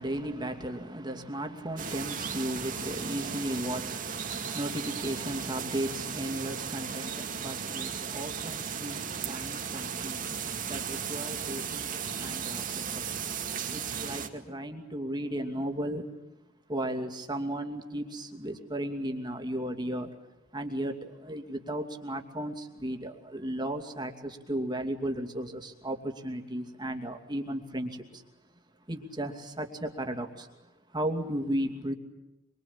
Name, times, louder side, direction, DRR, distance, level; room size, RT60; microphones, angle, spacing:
voice 1, 0.0-13.2 13.7-16.1 16.7-20.1 20.5-28.2 28.9-31.9, right 1 dB, 25° right, 4 dB, 2.6 m, -35 dB
sound 1, 1.8-14.3, right 7 dB, 45° right, 2.3 m, -36 dB
25.0 x 24.0 x 8.7 m, 0.94 s
head